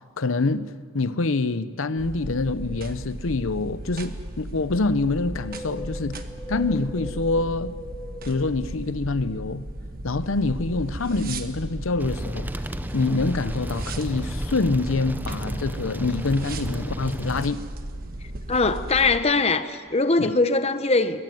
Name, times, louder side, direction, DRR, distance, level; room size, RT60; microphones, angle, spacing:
voice 1, 0.2-6.2 6.5-7.8 8.2-9.6 10.0-17.6 20.2-20.3, left 3 dB, 70° left, 0.8 m, -26 dB
sound 1, 2.0-19.2, right 1 dB, 45° right, 1.3 m, -36 dB
Wind, 5.1-9.5 9.7-9.8, left 2 dB, 10° left, 1.4 m, -41 dB
sound 2, 12.0-17.5, right 1 dB, 10° right, 0.6 m, -33 dB
voice 2, 18.5-21.2, left 3 dB, 30° left, 0.9 m, -21 dB
22.0 x 16.5 x 9.3 m
head